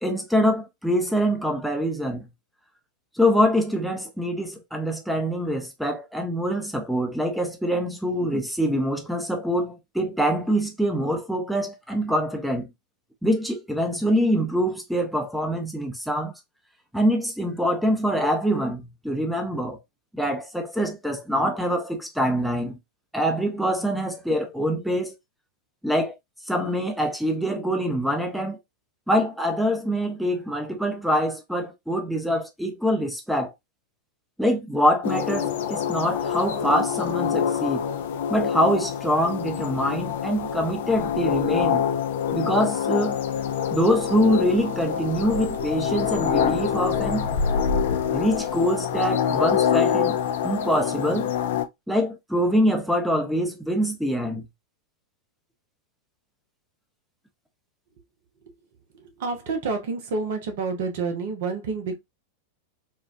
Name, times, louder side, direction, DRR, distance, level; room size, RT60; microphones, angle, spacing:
voice 1, 0.0-2.3 3.2-12.7 13.2-16.3 16.9-19.8 20.1-22.8 23.1-25.1 25.8-26.1 26.5-28.6 29.1-33.5 34.4-37.8 38.3-41.8 42.3-43.2 43.7-47.3 48.1-50.2 50.4-51.3 51.9-54.4, equal, ahead, 0.7 m, -24 dB
sound 1, 35.0-51.7, left 8 dB, 55° left, 0.4 m, -26 dB
voice 2, 59.2-62.0, right 4 dB, 55° right, 0.9 m, -28 dB
4.2 x 2.3 x 2.5 m
figure-of-eight pair, 90°, 0 cm